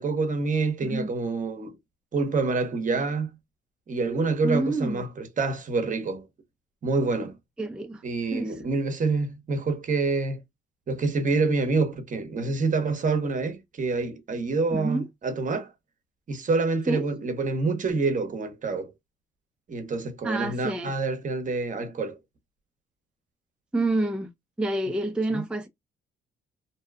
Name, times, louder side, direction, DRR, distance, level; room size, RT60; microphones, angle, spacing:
voice 1, 0.0-1.8 2.1-3.3 3.9-6.2 6.8-7.3 8.0-10.4 10.9-15.7 16.3-18.9 19.7-22.2 25.3-25.4, right 3 dB, 40° right, 0.9 m, -27 dB
voice 2, 4.4-5.0 7.6-8.0 8.3-8.5 14.7-15.1 16.9-17.0 20.2-20.9 23.7-24.3 24.6-25.7, right 2 dB, 5° right, 0.5 m, -27 dB
2.7 x 2.2 x 2.3 m
cardioid pair, 90°, 20 cm